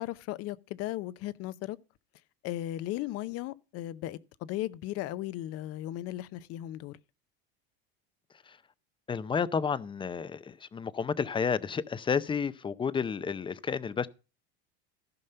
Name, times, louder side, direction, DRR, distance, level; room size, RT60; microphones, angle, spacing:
voice 1, 0.0-1.8 2.4-7.0, left 14 dB, 50° left, 0.7 m, -36 dB
voice 2, 9.1-14.1, left 6 dB, 15° left, 0.5 m, -31 dB
14.5 x 5.4 x 5.5 m
supercardioid pair, 110°, 30 cm